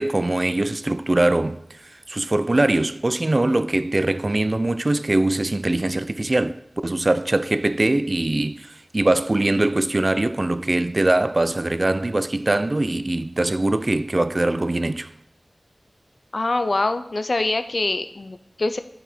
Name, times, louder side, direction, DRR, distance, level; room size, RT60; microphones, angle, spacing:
voice 1, 0.0-15.1, right 2 dB, 40° right, 0.3 m, -22 dB
voice 2, 16.3-18.8, left 2 dB, 60° left, 0.4 m, -24 dB
11.0 x 4.1 x 4.3 m
wide cardioid pair, 60°, 0 cm